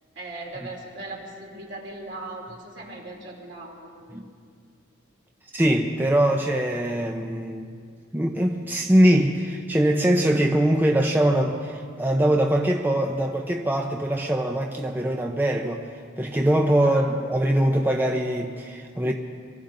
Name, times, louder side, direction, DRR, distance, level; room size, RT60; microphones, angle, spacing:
voice 1, 0.1-4.2 16.8-17.1, right 2 dB, 60° right, -2 dB, 3.1 m, -39 dB
voice 2, 5.5-7.7 8.1-15.8 16.2-19.1, right 1 dB, 10° right, 1 dB, 0.6 m, -22 dB
23.5 x 14.0 x 3.9 m, 2.2 s
head